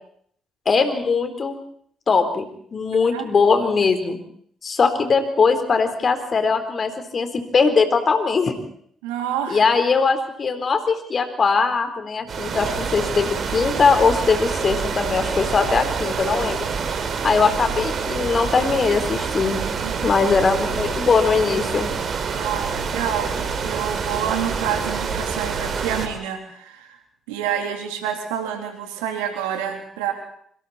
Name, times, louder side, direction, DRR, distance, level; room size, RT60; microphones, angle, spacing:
voice 1, 0.7-1.5 2.1-2.4 2.7-4.2 4.6-8.5 9.5-16.6 17.2-19.6 20.0-21.9, left 5 dB, 45° left, 8 dB, 4.1 m, -20 dB
voice 2, 9.0-9.6 19.8-20.2 22.3-27.0 27.3-30.1, right 9 dB, 85° right, 4 dB, 3.5 m, -28 dB
sound 1, 12.3-26.1, right 5 dB, 55° right, 3.4 m, -27 dB
26.0 x 25.5 x 4.4 m, 0.63 s
hypercardioid pair, 45°, 0 cm